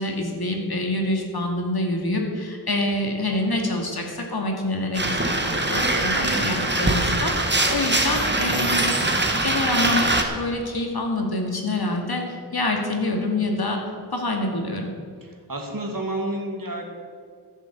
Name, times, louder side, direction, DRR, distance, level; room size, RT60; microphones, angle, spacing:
voice 1, 0.0-13.8 14.1-14.9, left 2 dB, 65° left, 1 dB, 2.4 m, -26 dB
sound 1, 4.9-10.2, right 2 dB, 25° right, 1.6 m, -22 dB
voice 2, 6.1-6.4 15.2-16.9, right 1 dB, 55° right, 1 dB, 2.6 m, -30 dB
14.0 x 7.6 x 8.1 m, 2.1 s
wide cardioid pair, 75°, 41 cm